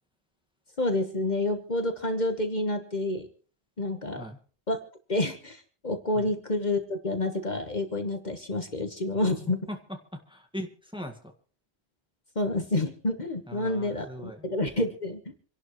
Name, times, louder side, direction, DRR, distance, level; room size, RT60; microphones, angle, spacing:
voice 1, 0.8-3.3 3.8-4.3 4.7-4.8 5.1-9.6 12.3-15.2, left 2 dB, 45° left, 6 dB, 1.4 m, -29 dB
voice 2, 9.7-11.3 13.5-14.5, equal, 5° right, 4 dB, 1.6 m, -40 dB
27.5 x 11.5 x 3.1 m, 0.41 s
omnidirectional pair, 1.1 m